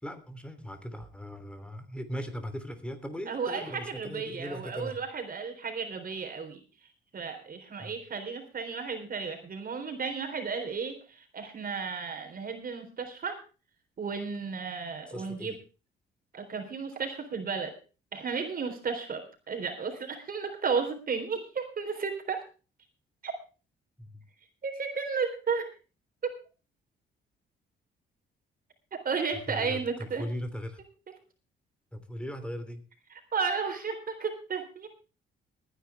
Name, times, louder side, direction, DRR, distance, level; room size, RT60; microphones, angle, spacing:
voice 1, 0.0-5.0 7.8-8.0 15.1-15.6 24.0-24.2 29.5-30.8 31.9-32.8, equal, 5° left, 9 dB, 3.1 m, -39 dB
voice 2, 3.3-6.6 7.1-13.4 14.0-15.5 16.3-17.7 18.1-22.4 23.2-23.3 24.6-25.7 26.2-26.4 28.9-30.2 33.1-34.9, right 5 dB, 45° right, 5 dB, 3.7 m, -33 dB
21.5 x 10.0 x 3.4 m, 0.34 s
cardioid pair, 90°, 20 cm